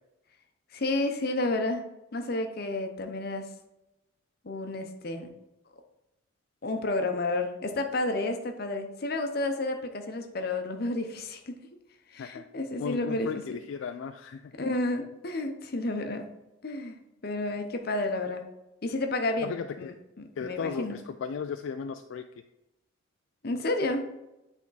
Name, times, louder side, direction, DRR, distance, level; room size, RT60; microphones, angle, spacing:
voice 1, 0.7-1.8 2.1-3.5 4.4-5.3 6.6-11.6 12.1-13.4 14.6-16.3 16.6-17.0 17.2-18.5 18.8-21.0 23.4-24.1, left 2 dB, 50° left, 5 dB, 0.7 m, -31 dB
voice 2, 12.8-14.4 19.4-19.9 20.4-22.3, left 6 dB, 70° left, 8 dB, 0.3 m, -35 dB
8.4 x 3.6 x 4.0 m, 0.93 s
head